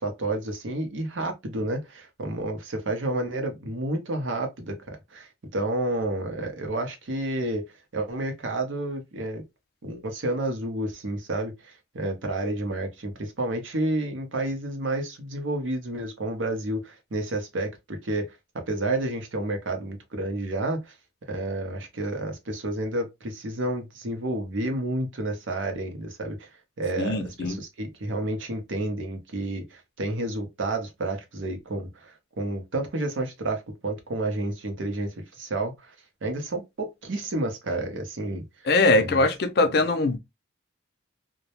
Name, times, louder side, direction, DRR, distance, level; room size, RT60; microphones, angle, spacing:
voice 1, 0.0-7.6 7.9-9.4 9.8-20.9 21.3-26.5 26.8-35.9 36.2-38.4 39.0-39.2, right 2 dB, 85° right, 0.7 m, -30 dB
voice 2, 27.0-27.6 38.7-40.2, left 2 dB, 55° left, 0.4 m, -22 dB
2.2 x 2.0 x 2.8 m
head